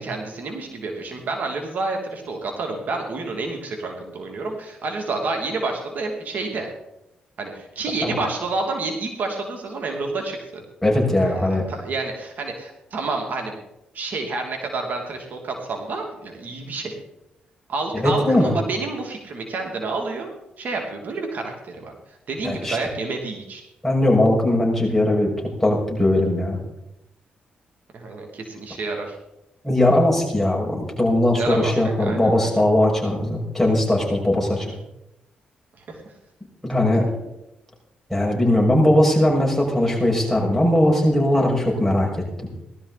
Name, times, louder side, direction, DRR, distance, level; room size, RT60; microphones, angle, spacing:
voice 1, 0.0-6.7 7.4-10.6 11.2-13.5 13.9-17.0 17.7-20.3 20.6-23.6 27.9-29.2 31.3-32.6 35.8-36.0, right 3 dB, 60° right, 2 dB, 2.7 m, -29 dB
voice 2, 10.8-11.6 17.9-18.5 22.4-22.8 23.8-26.6 29.6-34.7 36.6-37.1 38.1-42.1, left 1 dB, 5° left, -2 dB, 6.4 m, -19 dB
18.5 x 12.5 x 4.2 m, 0.89 s
supercardioid pair, 60°, 3 cm